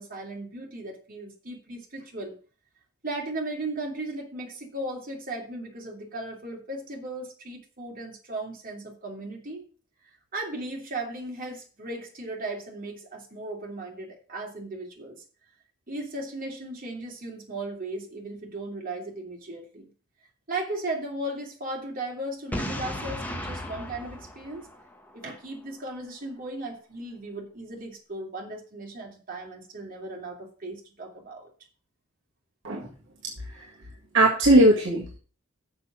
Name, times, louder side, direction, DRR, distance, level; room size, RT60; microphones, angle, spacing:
voice 1, 0.0-2.4 3.0-9.6 10.3-15.2 15.9-19.9 20.5-24.7 25.1-31.5, right 2 dB, 45° right, 0 dB, 3.0 m, -36 dB
Boom, 22.5-25.4, left 1 dB, 10° left, 1.4 m, -35 dB
voice 2, 34.1-35.2, right 1 dB, 60° right, -2 dB, 1.9 m, -19 dB
6.8 x 6.5 x 7.4 m, 0.39 s
head